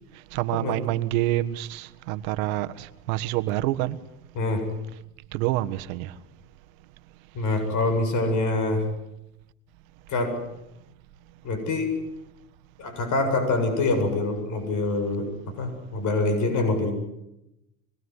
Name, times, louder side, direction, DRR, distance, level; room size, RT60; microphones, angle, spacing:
voice 1, 0.3-4.0 5.3-6.1, right 15 dB, 75° right, 1.6 m, -27 dB
voice 2, 7.3-8.8 10.1-10.3 11.4-11.9 12.8-15.3 15.6-16.9, left 2 dB, 45° left, 7.7 m, -25 dB
25.5 x 20.5 x 9.8 m
supercardioid pair, 110°, 41 cm